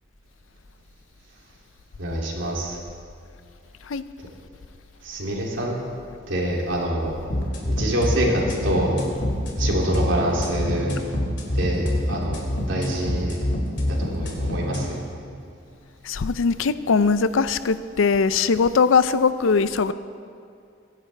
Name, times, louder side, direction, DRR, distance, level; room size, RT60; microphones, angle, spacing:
voice 1, 2.0-2.8 4.2-4.3 5.0-5.8 6.3-7.2 7.7-9.0 9.6-11.0 11.5-13.4 13.7-15.0, right 1 dB, 75° right, -3 dB, 2.7 m, -26 dB
sound 1, 7.3-14.9, left 1 dB, 60° left, 2.5 m, -26 dB
voice 2, 16.0-19.9, left 5 dB, 90° left, 14 dB, 0.5 m, -20 dB
24.0 x 10.5 x 3.4 m, 2.3 s
head